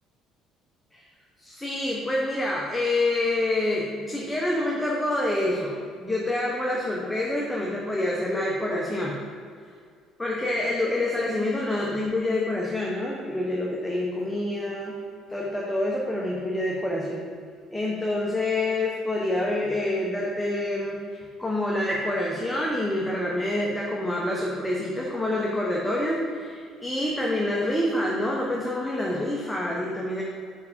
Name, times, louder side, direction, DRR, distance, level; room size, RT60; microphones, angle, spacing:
voice 1, 1.4-9.2 10.2-15.0 15.3-17.3 17.7-30.2, left 1 dB, 10° left, -3 dB, 0.8 m, -27 dB
4.7 x 4.7 x 4.2 m, 2.1 s
cardioid pair, 105°, 0 cm